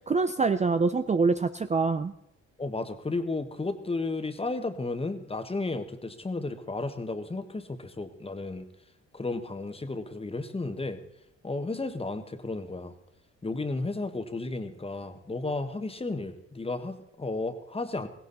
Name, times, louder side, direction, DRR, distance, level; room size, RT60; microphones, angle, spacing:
voice 1, 0.1-2.1, right 4 dB, 25° right, 10 dB, 0.6 m, -25 dB
voice 2, 2.6-8.6 9.1-11.0 11.4-12.9 13.4-18.1, left 3 dB, 20° left, 8 dB, 1.5 m, -33 dB
16.5 x 16.5 x 4.1 m, 0.81 s
cardioid pair, 90°, 30 cm